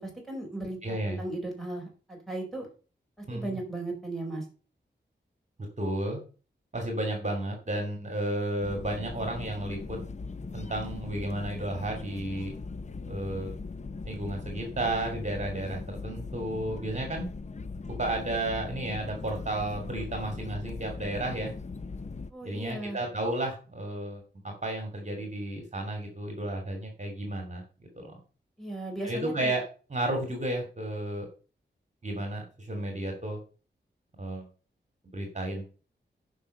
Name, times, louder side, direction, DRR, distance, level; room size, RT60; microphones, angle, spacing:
voice 1, 0.0-2.7 3.2-4.4 22.3-23.0 28.6-29.5, right 2 dB, ahead, 0 dB, 4.6 m, -36 dB
voice 2, 0.8-1.2 3.3-3.6 5.8-6.2 6.7-10.0 10.5-12.5 13.1-13.6 14.0-17.3 18.0-21.5 22.4-27.6 27.9-28.2 29.0-29.6 29.9-31.3 32.0-33.4 34.2-34.4 35.1-35.7, right 1 dB, 40° right, 3 dB, 2.9 m, -32 dB
sound 1, 8.6-22.3, left 4 dB, 40° left, 0.7 m, -39 dB
10.0 x 5.6 x 6.7 m, 0.38 s
wide cardioid pair, 100°, 19 cm